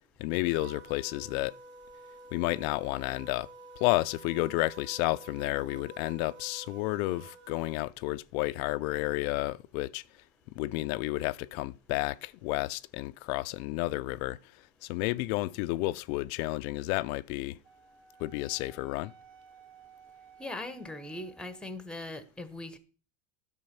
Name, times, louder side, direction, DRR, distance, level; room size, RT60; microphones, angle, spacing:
voice 1, 0.2-1.6 2.3-3.5 3.8-10.0 10.5-14.4 14.8-17.6 18.2-19.1, left 19 dB, 85° left, 0.6 m, -31 dB
sound 1, 0.5-7.7, right 3 dB, 25° right, 2.0 m, -50 dB
Wind instrument woodwind instrument, 17.6-21.8, right 5 dB, 85° right, 1.6 m, -56 dB
voice 2, 20.4-22.8, left 2 dB, ahead, 0.8 m, -40 dB
11.0 x 6.2 x 5.8 m
cardioid pair, 155°, 40 cm